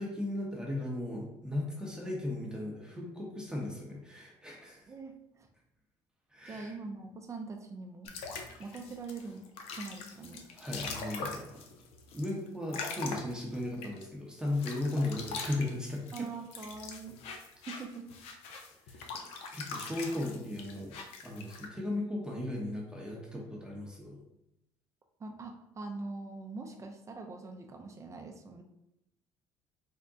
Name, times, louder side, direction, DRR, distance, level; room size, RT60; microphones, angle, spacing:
voice 1, 0.0-4.8 6.3-6.7 8.6-8.7 10.5-11.5 12.1-16.3 18.9-19.1 19.5-21.0 21.2-24.2, left 1 dB, 5° right, -3 dB, 0.8 m, -36 dB
voice 2, 4.9-5.5 6.5-8.1 8.6-9.5 9.8-10.4 16.1-17.2 17.6-18.1 25.2-28.6, right 3 dB, 30° right, 3 dB, 0.5 m, -43 dB
sound 1, 8.1-14.0 14.5-21.7, left 4 dB, 75° left, 0.6 m, -42 dB
3.5 x 2.1 x 3.8 m, 0.85 s
cardioid pair, 110°, 10 cm